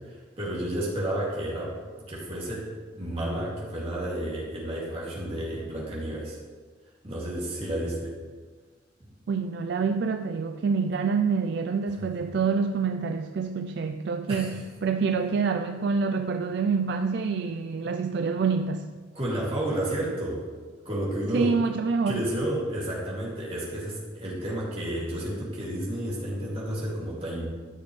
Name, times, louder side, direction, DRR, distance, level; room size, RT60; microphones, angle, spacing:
voice 1, 0.1-1.7 2.1-6.4 7.0-8.1 11.9-12.3 14.3-14.5 19.1-20.4 20.8-21.6 22.1-27.5, right 1 dB, 30° right, -6 dB, 2.4 m, -31 dB
voice 2, 9.3-18.9 21.3-22.3, right 5 dB, 60° right, 7 dB, 0.3 m, -27 dB
13.5 x 6.2 x 3.2 m, 1.5 s
head